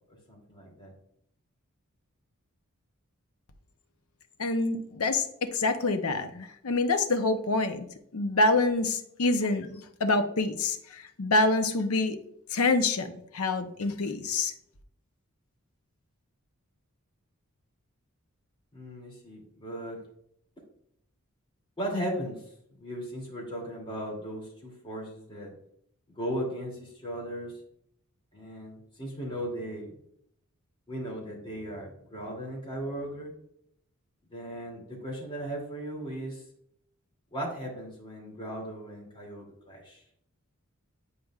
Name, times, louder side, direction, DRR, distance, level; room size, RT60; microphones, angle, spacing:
voice 1, 0.1-0.9 18.7-20.0 21.8-22.4 22.8-25.5 26.2-27.6 28.3-29.9 30.9-33.3 34.3-36.4 37.3-40.0, equal, 25° left, -3 dB, 2.6 m, -37 dB
voice 2, 4.4-7.9 8.1-12.2 12.5-14.5, left 2 dB, 85° left, 8 dB, 0.8 m, -26 dB
9.6 x 5.0 x 2.4 m, 0.72 s
head